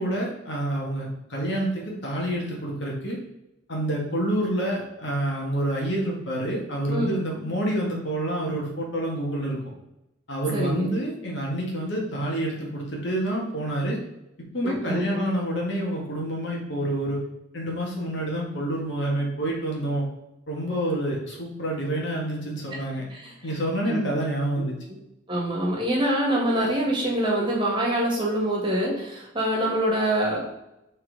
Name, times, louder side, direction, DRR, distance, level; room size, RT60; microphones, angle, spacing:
voice 1, 0.0-3.2 3.7-9.6 10.3-14.0 14.4-17.2 17.5-20.0 20.5-23.0 23.4-24.8, right 1 dB, 65° left, -2 dB, 2.0 m, -28 dB
voice 2, 10.5-10.9 14.6-15.2 23.1-23.3 23.9-24.0 25.3-30.6, right 1 dB, 25° right, -3 dB, 2.0 m, -25 dB
5.8 x 4.4 x 4.1 m, 0.89 s
head